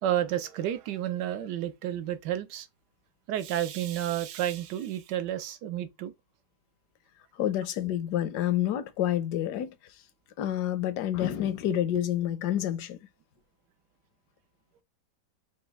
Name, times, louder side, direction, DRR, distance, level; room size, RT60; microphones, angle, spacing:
voice 1, 0.0-2.7 3.3-6.1, right 11 dB, 80° right, 1.3 m, -31 dB
voice 2, 7.3-9.8 10.4-13.0, left 11 dB, 75° left, 1.2 m, -28 dB
5.0 x 2.3 x 3.3 m
omnidirectional pair, 1.9 m